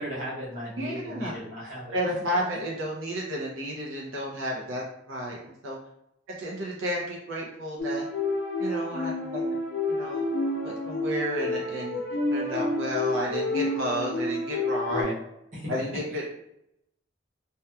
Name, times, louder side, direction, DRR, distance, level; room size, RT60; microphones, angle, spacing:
voice 1, 0.0-2.0 14.9-15.1 15.5-15.7, equal, 40° right, -7 dB, 0.9 m, -35 dB
voice 2, 0.7-1.4 1.9-5.4 5.6-5.8 6.4-8.1 8.6-9.4 9.9-10.3 10.6-12.0 12.3-15.0 15.7-16.3, equal, 85° right, -2 dB, 0.5 m, -32 dB
sound 1, 7.8-15.0, left 2 dB, 65° left, 0.7 m, -29 dB
2.7 x 2.2 x 2.2 m, 0.81 s
head